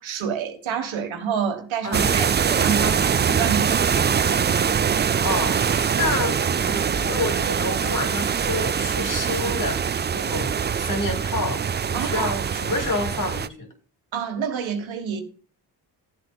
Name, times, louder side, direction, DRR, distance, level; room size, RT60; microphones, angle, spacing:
voice 1, 0.0-4.0 11.9-12.3 14.1-15.2, right 7 dB, 75° right, 1.6 m, -28 dB
sound 1, 1.9-13.5, right 7 dB, 25° right, 0.4 m, -23 dB
voice 2, 5.2-9.8 10.1-10.5 10.8-11.6 11.9-13.7, left 2 dB, 40° left, 2.6 m, -28 dB
14.0 x 7.7 x 2.3 m
supercardioid pair, 50°, 47 cm